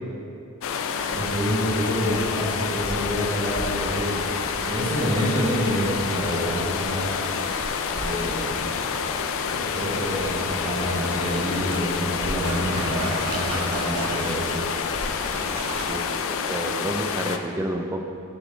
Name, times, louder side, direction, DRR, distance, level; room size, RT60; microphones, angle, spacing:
sound 1, 0.6-17.4, left 6 dB, 65° left, 0.4 m, -28 dB
sound 2, 1.0-15.9, right 1 dB, 85° right, 1.0 m, -37 dB
voice 1, 1.1-4.2 4.6-7.1 7.9-8.7 9.5-14.5, equal, 30° right, -11 dB, 1.5 m, -27 dB
voice 2, 15.9-18.0, right 1 dB, 10° right, 3 dB, 0.4 m, -30 dB
10.0 x 4.6 x 3.3 m, 2.5 s
head